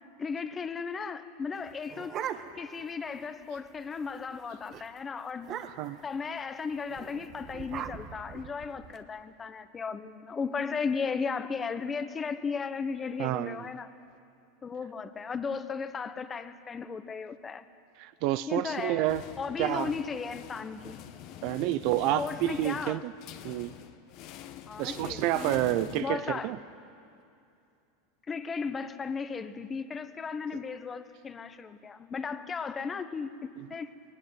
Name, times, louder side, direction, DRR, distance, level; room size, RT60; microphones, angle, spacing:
voice 1, 0.2-2.2 2.6-5.5 6.0-13.9 14.6-17.6 18.5-19.1 19.4-21.0 21.3-21.7 22.1-23.0 24.7-25.6 26.0-26.5 28.3-33.9, left 5 dB, 25° left, 1.2 m, -35 dB
sound 1, 1.5-2.8 3.2-3.3 3.6-3.9 4.2-4.4 4.7-4.9 5.4-6.0 6.9-9.0, right 9 dB, 45° right, 1.3 m, -40 dB
voice 2, 5.6-6.0 13.2-13.7 18.0-19.2 19.6-19.9 21.4-23.1 23.4-23.7 24.8-26.6 33.6-33.7, right 14 dB, 60° right, 0.6 m, -29 dB
sound 2, 18.7-26.6, left 10 dB, 55° left, 1.3 m, -45 dB
20.0 x 17.5 x 9.4 m
hypercardioid pair, 95°, 0 cm